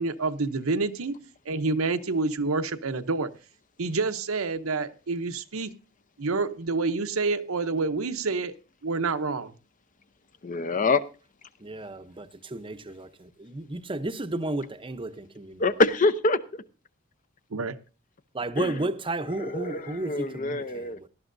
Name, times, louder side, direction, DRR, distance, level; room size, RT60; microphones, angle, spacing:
voice 1, 0.0-3.3 3.8-5.7 6.2-8.6 8.8-9.6 17.5-17.8, right 3 dB, 85° right, 0.9 m, -28 dB
voice 2, 10.4-11.0 15.6-16.6 18.6-18.7 19.4-21.0, left 3 dB, 40° left, 0.7 m, -25 dB
voice 3, 11.6-15.6 18.3-21.1, right 2 dB, 25° right, 0.8 m, -33 dB
18.0 x 12.0 x 2.6 m
head